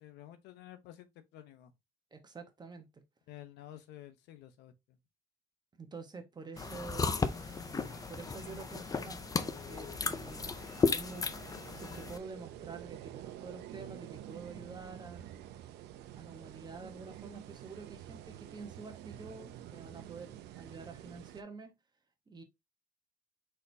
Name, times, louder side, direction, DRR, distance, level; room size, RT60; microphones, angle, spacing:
voice 1, 0.0-1.7 3.3-4.7, left 13 dB, 85° left, 0.8 m, -51 dB
voice 2, 2.1-3.0 5.7-7.1 8.1-10.5 10.9-11.3 11.7-15.2 16.1-21.7 22.3-22.4, right 4 dB, 25° right, 1.1 m, -48 dB
sound 1, 6.5-21.4, right 12 dB, 80° right, 0.6 m, -50 dB
sound 2, 6.6-12.2, left 4 dB, 20° left, 0.5 m, -35 dB
sound 3, 6.9-12.1, left 4 dB, 5° left, 2.1 m, -57 dB
4.3 x 4.0 x 2.7 m
cardioid pair, 110°, 17 cm